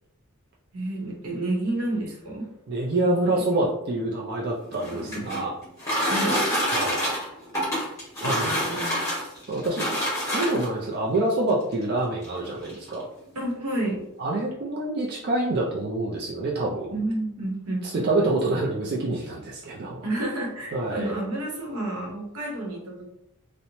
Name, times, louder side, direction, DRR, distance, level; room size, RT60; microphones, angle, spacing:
voice 1, 0.7-2.5 3.0-3.4 6.1-6.5 8.2-9.1 13.3-14.0 16.9-18.4 20.0-23.1, right 1 dB, 80° right, -1 dB, 0.8 m, -30 dB
voice 2, 2.7-5.5 6.7-7.0 8.2-8.6 9.5-9.9 10.3-13.0 14.2-16.9 17.8-20.0 20.7-21.1, right 2 dB, 45° right, -3 dB, 0.4 m, -26 dB
sound 1, 4.6-10.8 11.7-11.8 12.2-12.3 12.6-13.0, equal, 15° left, 1.0 m, -27 dB
2.9 x 2.0 x 2.7 m, 0.79 s
head